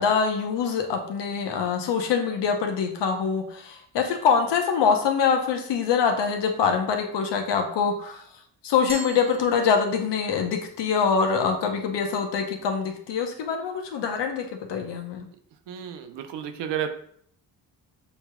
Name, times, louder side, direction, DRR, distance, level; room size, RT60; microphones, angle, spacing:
voice 1, 0.0-8.2 8.6-15.2, left 6 dB, 70° left, 4 dB, 0.9 m, -24 dB
Glass, 8.9-10.3, right 2 dB, 15° right, 0.7 m, -41 dB
voice 2, 15.7-16.9, right 9 dB, 70° right, 7 dB, 0.7 m, -31 dB
6.1 x 3.3 x 2.3 m, 0.62 s
supercardioid pair, 55°, 44 cm